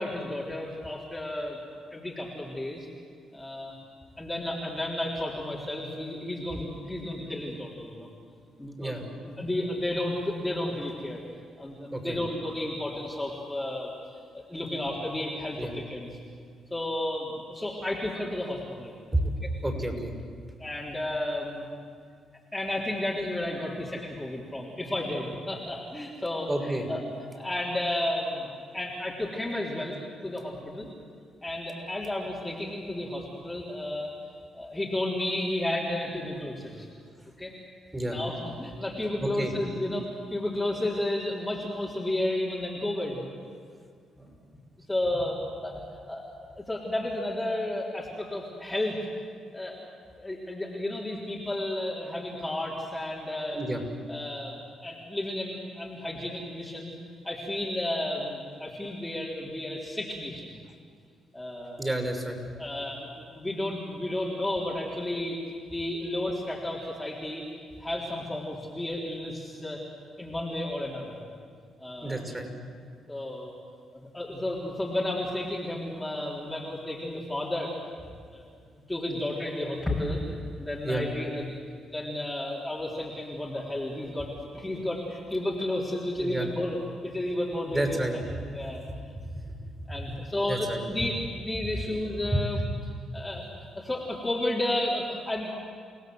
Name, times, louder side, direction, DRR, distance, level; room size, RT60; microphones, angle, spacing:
voice 1, 0.0-1.6 1.9-2.9 3.3-3.7 4.2-8.1 8.6-11.2 11.6-16.1 16.7-18.9 20.6-21.7 22.5-27.0 27.3-30.9 31.4-34.1 34.5-36.9 37.4-37.5 38.1-43.2 44.9-46.3 46.6-49.0 49.5-49.8 50.2-53.6 54.1-56.9 57.2-60.5 61.3-61.9 62.5-65.4 65.7-67.4 67.8-69.8 70.2-71.2 71.8-72.3 73.1-73.5 73.9-77.7 78.3-78.5 78.9-81.5 81.9-86.8 87.0-88.0 88.4-88.9 89.9-92.6 93.1-95.5, left 1 dB, 10° left, -5 dB, 3.6 m, -32 dB
voice 2, 19.6-20.1 26.5-26.9 37.9-38.2 39.2-39.5 44.2-44.3 53.5-53.8 61.8-62.4 72.0-72.5 80.8-81.0 86.2-86.5 87.7-88.1 88.9-89.6 90.1-90.2 90.5-90.8 91.6-91.7 92.3-92.7, right 1 dB, 15° right, 4 dB, 6.2 m, -30 dB
29.5 x 17.5 x 7.9 m, 2.2 s
cardioid pair, 90°, 0 cm